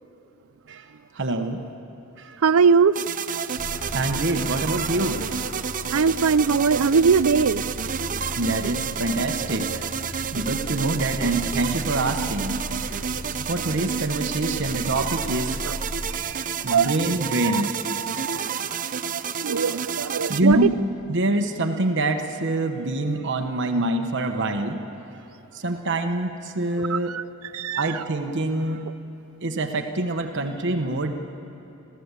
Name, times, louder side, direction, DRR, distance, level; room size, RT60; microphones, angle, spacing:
voice 1, 1.1-1.6 2.2-2.4 3.7-5.4 5.9-6.0 8.2-9.9 10.3-12.6 12.9-15.6 16.6-17.7 20.3-20.8 21.1-24.8 25.5-27.2 27.8-28.8 29.4-31.1, right 2 dB, 55° right, 4 dB, 1.1 m, -25 dB
voice 2, 2.4-3.0 5.9-7.6 10.8-10.9 15.6-15.7 16.1-16.9 17.4-17.6 18.0-18.5 19.4-20.7 26.9-27.2 27.5-27.9, right 5 dB, 80° right, 17 dB, 0.5 m, -21 dB
sound 1, 2.9-20.4, right 7 dB, 40° right, 0.6 m, -30 dB
sound 2, 3.5-16.1, equal, 55° left, 2.5 m, -37 dB
29.0 x 14.0 x 8.2 m, 2.9 s
head